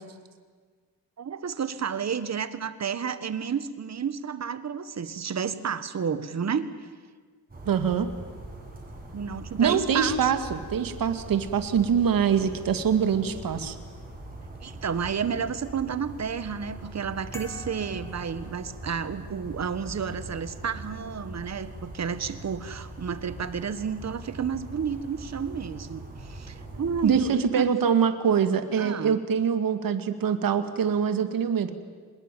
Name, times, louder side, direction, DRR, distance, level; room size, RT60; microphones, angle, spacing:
voice 1, 1.2-6.7 9.1-10.3 14.6-27.7 28.8-29.2, right 7 dB, 45° right, 13 dB, 1.5 m, -31 dB
sound 1, 7.5-27.2, right 2 dB, 20° right, 6.9 m, -42 dB
voice 2, 7.7-8.1 9.6-13.8 27.0-31.8, right 7 dB, 60° right, 9 dB, 2.1 m, -24 dB
sound 2, 17.3-19.2, equal, 5° left, 2.2 m, -46 dB
25.0 x 21.5 x 9.2 m, 1.6 s
cardioid pair, 110°, 39 cm